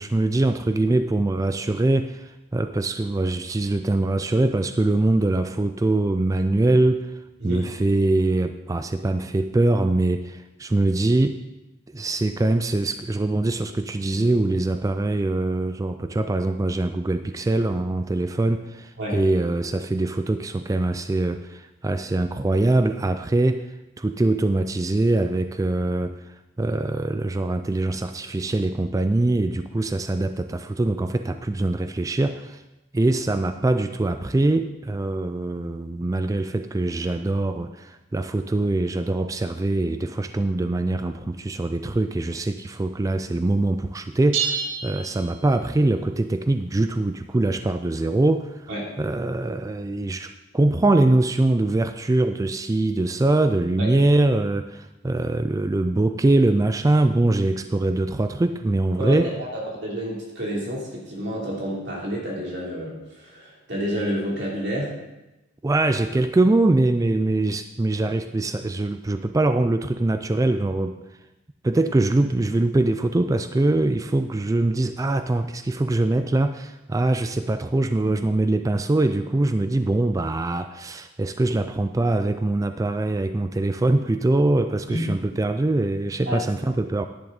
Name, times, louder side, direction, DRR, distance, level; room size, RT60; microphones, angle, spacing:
voice 1, 0.0-7.1 7.4-11.4 11.9-23.7 24.0-26.2 26.6-32.6 32.9-48.6 49.0-59.3 65.6-71.0 71.6-87.1, right 2 dB, 15° right, 9 dB, 0.3 m, -23 dB
voice 2, 19.0-19.4 48.7-48.8 53.8-53.9 59.0-64.9 78.0-78.2 84.9-85.1 86.3-86.4, equal, 60° right, -3 dB, 3.3 m, -29 dB
sound 1, 44.3-45.9, right 7 dB, 80° right, 1.2 m, -29 dB
10.5 x 10.5 x 4.0 m, 0.99 s
head